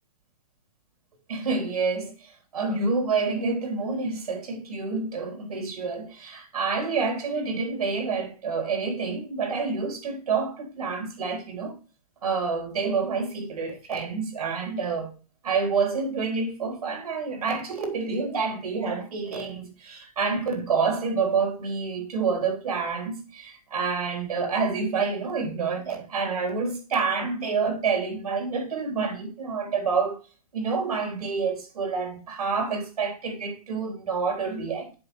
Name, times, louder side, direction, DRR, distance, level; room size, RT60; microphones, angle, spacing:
voice 1, 1.3-11.8 12.2-15.1 15.4-30.2 30.5-34.9, right 4 dB, 85° right, 3.7 m, -28 dB
7.6 x 5.8 x 4.2 m
hypercardioid pair, 160°, 19 cm